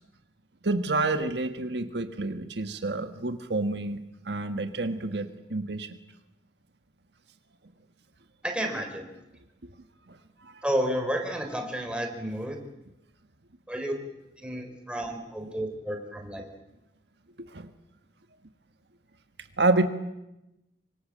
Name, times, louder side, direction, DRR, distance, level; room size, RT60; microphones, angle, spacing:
voice 1, 0.6-4.0 4.2-5.9 10.4-10.5 17.4-17.7 19.6-19.9, right 2 dB, 70° right, 8 dB, 1.5 m, -28 dB
voice 2, 8.4-9.1 10.6-12.6 13.7-13.9 14.4-16.5, equal, 5° right, 3 dB, 4.2 m, -31 dB
26.0 x 24.5 x 7.6 m, 0.92 s
head